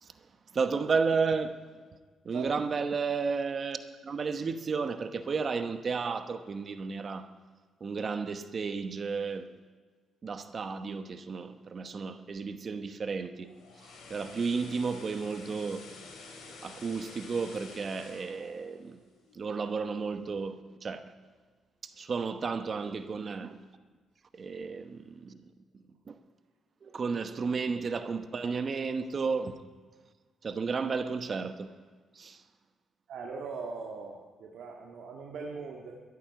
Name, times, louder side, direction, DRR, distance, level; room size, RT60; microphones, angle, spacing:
voice 1, 0.5-1.6 2.2-7.3 7.8-9.5 10.2-13.5 13.8-15.9 16.6-19.0 19.3-21.1 21.8-23.6 24.3-25.4 25.7-26.2 26.8-29.6 30.4-31.7 32.1-32.4, right 5 dB, 45° right, 0.9 m, -33 dB
sound 1, 13.4-19.6 19.9-20.1, left 3 dB, 80° left, 3.9 m, -49 dB
voice 2, 33.1-35.9, right 4 dB, 70° right, 1.8 m, -40 dB
12.5 x 11.0 x 8.0 m
cardioid pair, 90°, 0 cm